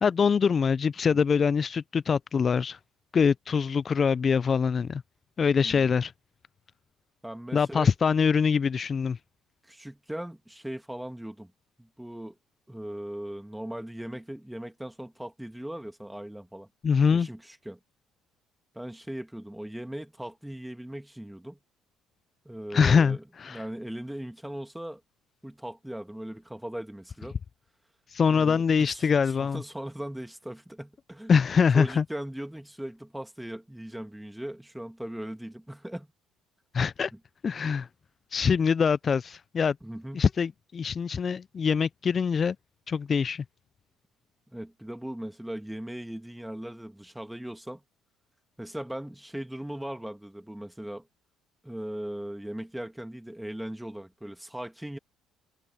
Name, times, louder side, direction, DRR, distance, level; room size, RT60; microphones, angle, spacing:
voice 1, 0.0-2.8 3.1-5.0 5.4-6.1 7.5-9.2 16.8-17.3 22.7-23.6 28.1-29.6 31.3-32.0 36.7-37.1 37.4-37.9 38.3-39.8 40.1-42.6 42.9-43.4, left 6 dB, 40° left, 0.5 m, -24 dB
voice 2, 5.6-5.9 7.2-7.9 9.6-11.5 11.8-12.4 12.7-16.7 17.1-17.8 18.7-21.6 22.4-23.2 23.5-25.0 25.4-27.4 28.3-31.3 31.7-36.1 39.8-40.2 44.5-47.8 48.6-51.1 51.6-55.0, right 1 dB, 5° right, 2.6 m, -39 dB
hypercardioid pair, 65°, 0 cm